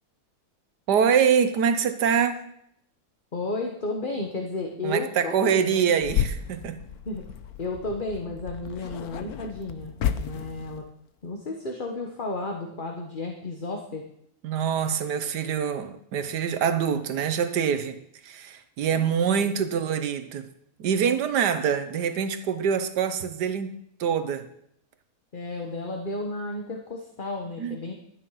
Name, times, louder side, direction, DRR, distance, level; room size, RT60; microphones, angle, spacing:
voice 1, 0.9-2.5 4.8-6.9 14.4-18.0 18.2-20.5 20.8-24.5 27.6-27.8, right 7 dB, 80° right, 10 dB, 1.5 m, -25 dB
voice 2, 3.3-5.8 7.0-7.2 7.6-10.8 11.2-14.1 18.9-19.5 25.3-27.9, left 2 dB, 35° left, 2 dB, 1.3 m, -33 dB
sound 1, 6.0-10.9, left 9 dB, 70° left, 1.2 m, -32 dB
12.5 x 9.3 x 5.7 m, 0.72 s
omnidirectional pair, 1.8 m